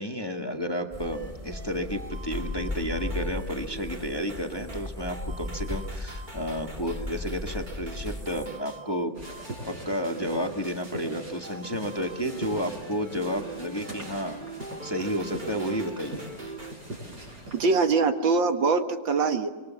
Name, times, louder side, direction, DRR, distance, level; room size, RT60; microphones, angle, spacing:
voice 1, 0.0-9.2 9.7-14.4 14.8-16.3, equal, 15° left, 4 dB, 1.6 m, -31 dB
sound 1, 0.9-8.5, left 2 dB, 5° right, 3.8 m, -36 dB
sound 2, 1.1-16.7, right 2 dB, 25° right, 2.4 m, -44 dB
sound 3, 9.1-17.6, right 1 dB, 55° right, 7.9 m, -41 dB
voice 2, 17.5-19.5, right 4 dB, 70° right, 7 dB, 2.3 m, -23 dB
26.5 x 23.5 x 7.1 m, 1.3 s
omnidirectional pair, 2.1 m